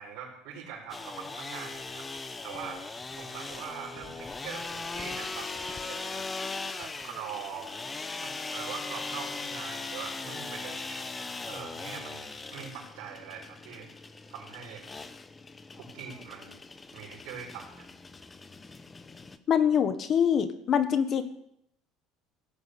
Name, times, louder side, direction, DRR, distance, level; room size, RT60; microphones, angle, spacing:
voice 1, 0.0-2.1 2.4-2.8 3.2-6.3 6.8-7.7 8.2-11.0 11.5-13.9 14.3-14.8 15.8-16.6 16.9-17.9, right 7 dB, 65° right, -4 dB, 5.5 m, -42 dB
sound 1, 0.9-19.4, left 3 dB, 15° left, 0.9 m, -39 dB
voice 2, 19.5-21.2, left 8 dB, 35° left, 10 dB, 1.4 m, -24 dB
16.0 x 9.6 x 8.4 m, 0.76 s
cardioid pair, 155°, 0 cm